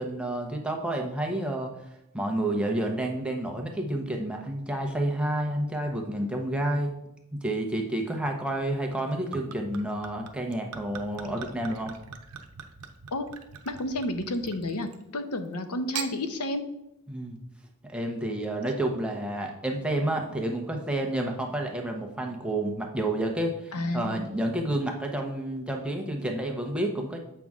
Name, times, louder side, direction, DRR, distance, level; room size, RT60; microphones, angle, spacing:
voice 1, 0.0-1.7 2.1-6.9 7.3-12.0 17.1-17.4 17.8-27.2, right 1 dB, 5° right, 1 dB, 0.9 m, -30 dB
Gurgling / Chink clink / Liquid, 8.9-15.1 15.7-16.1, right 7 dB, 80° right, 0.7 m, -42 dB
voice 2, 13.6-16.6 23.7-24.3, left 1 dB, 85° left, 9 dB, 0.8 m, -31 dB
7.6 x 5.7 x 3.6 m, 0.84 s
head